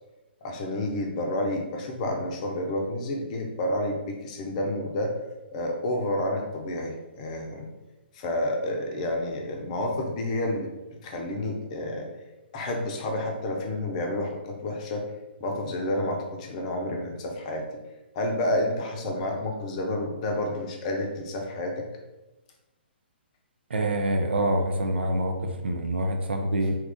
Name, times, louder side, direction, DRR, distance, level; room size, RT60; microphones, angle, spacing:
voice 1, 0.4-5.1 5.5-7.7 8.1-10.7 11.0-12.1 12.5-15.1 15.4-17.6 18.1-21.8, left 1 dB, 35° left, 2 dB, 0.6 m, -29 dB
voice 2, 23.7-25.3 25.6-26.8, right 1 dB, 70° right, 4 dB, 0.6 m, -25 dB
2.9 x 2.4 x 3.5 m, 1.1 s
figure-of-eight pair, 130°, 6 cm